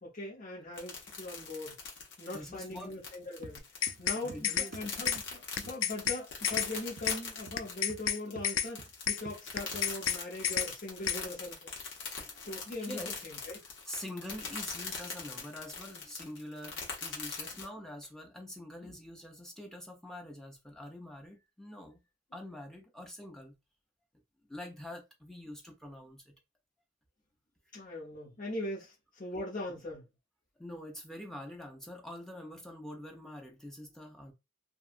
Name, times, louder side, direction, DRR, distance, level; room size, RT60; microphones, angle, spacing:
voice 1, 0.0-1.8 2.2-3.6 4.0-11.7 12.5-13.6 17.5-17.6 18.8-18.9 27.7-30.0, left 2 dB, 45° left, 0.9 m, -41 dB
sound 1, 0.8-17.7, left 5 dB, 70° left, 1.0 m, -42 dB
voice 2, 2.3-2.9 4.2-4.8 12.1-13.1 13.6-22.0 22.3-23.6 24.5-26.4 30.6-34.3, left 1 dB, 5° left, 0.6 m, -45 dB
sound 2, 3.4-3.6 3.9-4.4 4.7-4.9 5.2-5.3 5.6-5.8 6.0-6.2 6.5-6.7 7.0-7.1 7.5-8.1 8.4-8.5 8.8-8.9 9.3-9.4 9.7-9.9, right 3 dB, 45° right, 0.3 m, -48 dB
sound 3, 3.6-4.2 4.4-4.7 5.1-5.2 5.6-6.2 6.4-6.7 7.1-7.2 7.6-8.2 8.4-8.7 9.1-9.2 9.6-10.2 10.4-10.7 11.1-11.2, left 10 dB, 90° left, 0.3 m, -30 dB
2.7 x 2.3 x 2.5 m
head